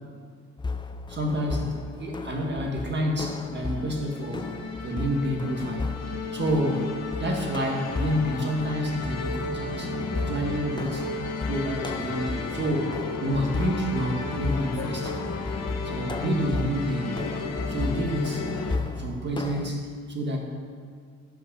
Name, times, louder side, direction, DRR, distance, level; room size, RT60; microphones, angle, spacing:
sound 1, 0.6-19.7, left 3 dB, 15° left, 0.4 m, -35 dB
voice 1, 1.1-4.5 4.8-5.8 6.3-6.9 7.2-9.9 10.2-11.1 11.4-15.2 15.8-17.2 17.7-18.5 19.0-20.4, equal, 35° right, 1 dB, 1.7 m, -29 dB
sound 2, 3.4-18.8, left 3 dB, 55° left, 1.2 m, -34 dB
9.2 x 5.6 x 5.6 m, 2.1 s
cardioid pair, 90°, 30 cm